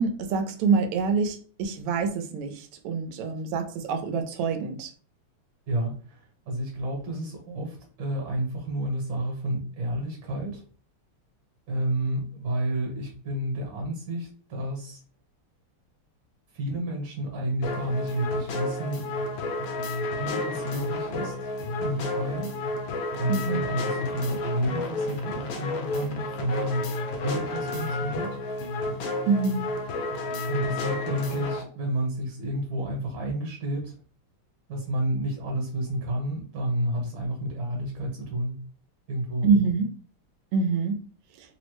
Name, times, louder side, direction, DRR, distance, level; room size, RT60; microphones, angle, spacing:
voice 1, 0.0-4.9 23.3-23.6 29.3-29.6 39.4-39.9 40.5-41.0, right 5 dB, 90° right, 1.6 m, -25 dB
voice 2, 5.7-6.2 6.5-10.6 11.7-15.0 16.5-19.0 20.2-21.4 21.8-22.5 23.2-26.9 27.2-28.4 30.5-33.9 34.7-38.5 39.1-39.5, right 1 dB, 60° right, 1.7 m, -30 dB
sound 1, 17.6-31.6, left 2 dB, 75° left, 1.3 m, -31 dB
3.8 x 2.0 x 3.1 m
omnidirectional pair, 2.4 m